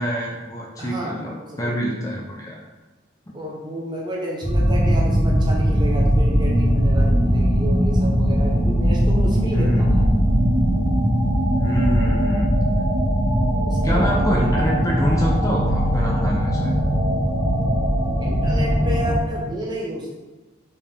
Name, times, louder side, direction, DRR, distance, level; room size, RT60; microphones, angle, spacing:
voice 1, 0.0-2.6 9.5-9.9 11.6-12.5 13.8-16.8, equal, 20° left, -3 dB, 0.7 m, -25 dB
voice 2, 0.8-2.1 3.3-10.1 13.6-14.1 18.2-20.2, equal, 25° right, -4 dB, 1.3 m, -31 dB
sound 1, 4.4-19.2, equal, 60° right, 1.7 m, -19 dB
5.5 x 4.8 x 4.2 m, 1.2 s
head